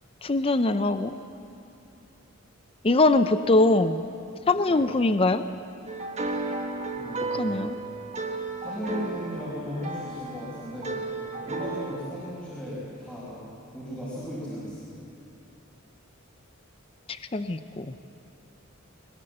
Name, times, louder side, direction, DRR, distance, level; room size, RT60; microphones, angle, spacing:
voice 1, 0.2-1.1 2.8-4.1 4.5-5.4 7.3-7.8 17.3-17.9, left 2 dB, 25° left, 11 dB, 0.5 m, -22 dB
sound 1, 5.9-12.0, right 3 dB, 30° right, 1.6 m, -34 dB
voice 2, 6.9-7.8 8.6-11.0 11.3-14.9, equal, 5° left, -8 dB, 5.2 m, -36 dB
22.0 x 20.5 x 7.7 m, 2.7 s
head